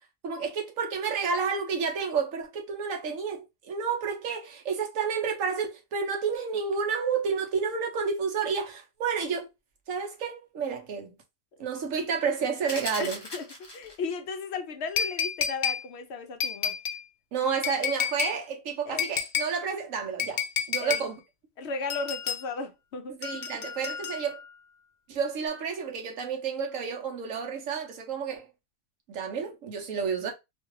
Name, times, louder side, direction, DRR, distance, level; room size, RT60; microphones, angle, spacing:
voice 1, 0.2-9.5 9.9-11.2 11.6-13.2 17.3-21.2 23.2-24.4 25.1-28.5 29.1-30.3, right 6 dB, 75° right, 1.2 m, -30 dB
sound 1, 12.7-14.1, left 1 dB, 30° left, 0.5 m, -39 dB
voice 2, 13.0-16.8 18.9-19.1 20.8-21.0 21.6-23.2, left 4 dB, 65° left, 0.7 m, -35 dB
sound 2, 15.0-15.8 16.4-17.0 17.6-18.4 19.0-19.5 20.2-21.1 21.9-22.4 23.2-24.4 25.5-25.6, left 7 dB, 85° left, 0.4 m, -30 dB
2.9 x 2.3 x 3.1 m
omnidirectional pair, 1.4 m